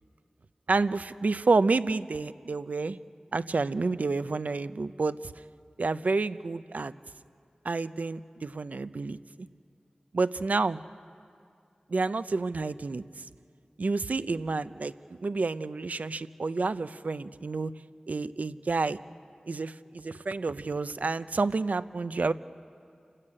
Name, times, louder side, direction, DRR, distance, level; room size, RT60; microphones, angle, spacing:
voice 1, 0.7-3.0 3.3-5.2 5.8-6.9 7.6-9.2 10.1-10.8 11.9-13.0 13.8-14.9 15.2-17.7 18.1-19.0 19.5-22.3, right 3 dB, 75° right, 13 dB, 0.6 m, -29 dB
29.5 x 13.5 x 8.7 m, 2.3 s
wide cardioid pair, 60°, 3 cm